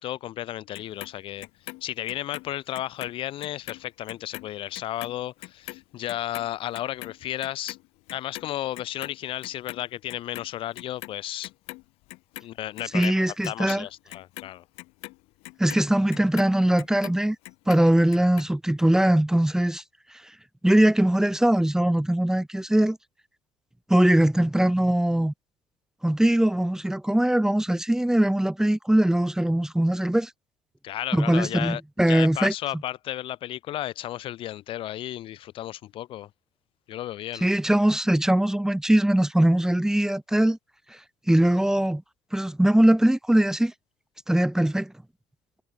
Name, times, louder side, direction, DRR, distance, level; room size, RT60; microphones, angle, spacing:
voice 1, 0.0-1.5 1.8-7.8 8.1-11.5 12.4-14.6 30.8-31.8 32.1-36.3 36.9-37.5, left 13 dB, 60° left, 0.4 m, -33 dB
Clock, 0.7-3.1 3.4-9.8 10.1-11.2 11.4-12.4 12.8-17.2 17.5-18.5 18.8-18.9, left 24 dB, 80° left, 3.2 m, -42 dB
voice 2, 12.9-13.8 15.6-17.4 17.7-19.8 20.6-23.0 23.9-25.3 26.0-30.3 31.1-32.5 37.4-40.6 41.3-42.0 42.3-43.7 44.3-44.9, right 1 dB, 5° right, 0.6 m, -21 dB
supercardioid pair, 70°, 10 cm